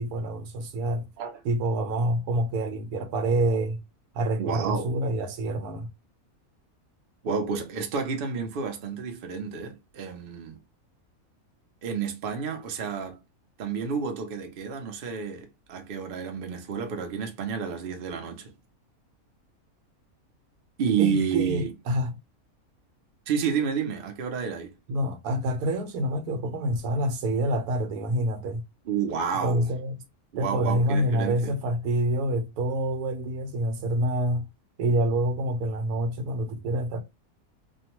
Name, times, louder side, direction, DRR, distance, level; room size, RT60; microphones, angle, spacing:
voice 1, 0.0-1.1 1.4-3.8 4.1-5.9 21.0-22.1 24.9-28.6 29.4-30.0 30.4-34.5 34.8-37.0, right 1 dB, 85° right, 1.1 m, -27 dB
voice 2, 4.4-4.9 7.2-10.6 11.8-13.2 13.6-18.5 20.8-21.7 23.3-24.7 28.9-29.7 30.3-31.5, right 6 dB, 55° right, 0.7 m, -30 dB
2.5 x 2.2 x 2.8 m
omnidirectional pair, 1.5 m